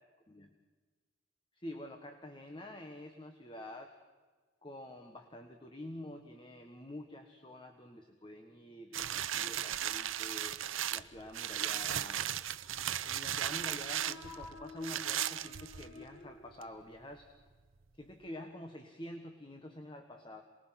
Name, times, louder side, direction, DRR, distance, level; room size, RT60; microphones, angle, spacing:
voice 1, 1.5-3.9 4.6-10.6 10.9-12.3 13.0-17.3 17.9-20.4, left 1 dB, 25° left, 5 dB, 1.4 m, -47 dB
sound 1, 8.9-16.1 16.6-16.7, right 11 dB, 75° right, 0.7 m, -36 dB
sound 2, 13.2-17.1, left 3 dB, 40° left, 2.8 m, -52 dB
28.0 x 20.5 x 5.9 m, 1.4 s
head